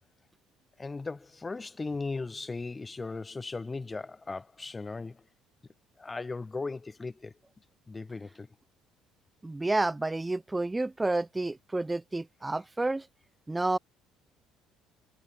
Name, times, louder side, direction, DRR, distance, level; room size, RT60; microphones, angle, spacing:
voice 1, 0.8-5.2 6.0-7.3 7.9-8.5, left 3 dB, 20° left, 0.7 m, -37 dB
voice 2, 9.4-13.1 13.5-13.8, right 2 dB, 15° right, 0.3 m, -30 dB
figure-of-eight pair, 55°, 0 cm